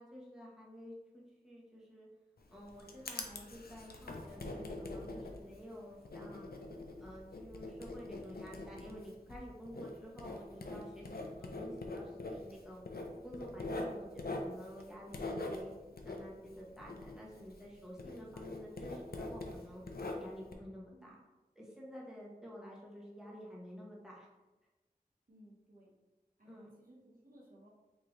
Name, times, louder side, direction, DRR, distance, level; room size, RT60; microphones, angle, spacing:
voice 1, 0.0-2.1 2.5-6.5 7.0-12.8 13.2-15.7 16.0-21.1 21.5-24.3 26.4-26.7, equal, 5° right, -5 dB, 1.0 m, -50 dB
Writing, 2.4-17.7 18.0-20.5, left 2 dB, 75° left, 0.5 m, -44 dB
voice 2, 25.3-25.9 26.4-27.7, equal, 65° right, -4 dB, 1.0 m, -60 dB
3.8 x 2.8 x 3.1 m, 1.1 s
wide cardioid pair, 45°, 16 cm